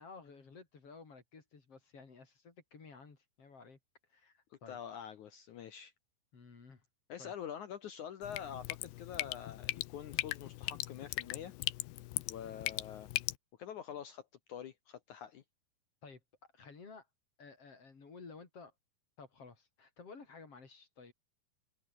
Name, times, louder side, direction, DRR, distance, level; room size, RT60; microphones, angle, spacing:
voice 1, 0.0-3.8 4.1-4.8 6.3-6.8 7.2-7.3 16.0-17.1 17.4-18.7 19.2-21.1, left 4 dB, 35° left, 4.2 m, -54 dB
voice 2, 4.7-5.9 7.1-11.5 12.3-13.1 13.6-15.4, left 9 dB, 70° left, 1.9 m, -46 dB
Drip, 8.2-13.4, left 19 dB, 85° left, 2.9 m, -39 dB
omnidirectional pair, 5.0 m